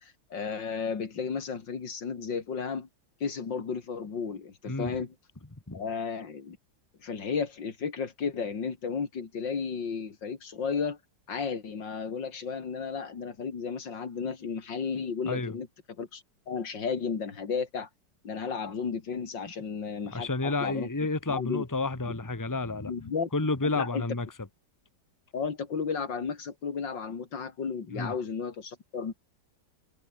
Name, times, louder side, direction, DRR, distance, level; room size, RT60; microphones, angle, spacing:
voice 1, 0.0-2.9 3.2-5.1 5.7-6.6 7.0-11.0 11.3-15.7 16.0-17.9 18.2-20.9 21.3-21.6 22.8-23.3 23.6-24.0 25.3-29.1, left 5 dB, 80° left, 3.1 m, -33 dB
voice 2, 20.1-22.9 23.3-24.3 27.9-28.1, left 3 dB, 10° left, 1.8 m, -30 dB
omnidirectional pair, 2.0 m